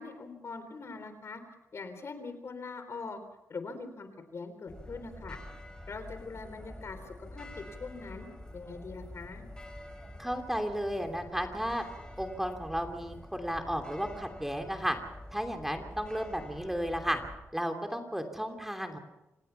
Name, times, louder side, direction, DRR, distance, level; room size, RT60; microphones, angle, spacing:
voice 1, 0.0-1.4 1.7-3.2 3.5-5.4 5.9-8.3 8.5-9.4, left 4 dB, 55° left, 9 dB, 3.7 m, -42 dB
sound 1, 4.7-17.4, left 1 dB, 15° left, 5.1 m, -47 dB
voice 2, 10.2-11.8 12.2-15.0 15.3-17.2 17.5-19.0, equal, 5° right, 5 dB, 2.9 m, -33 dB
27.5 x 17.5 x 5.7 m, 0.96 s
cardioid pair, 75°, 6 cm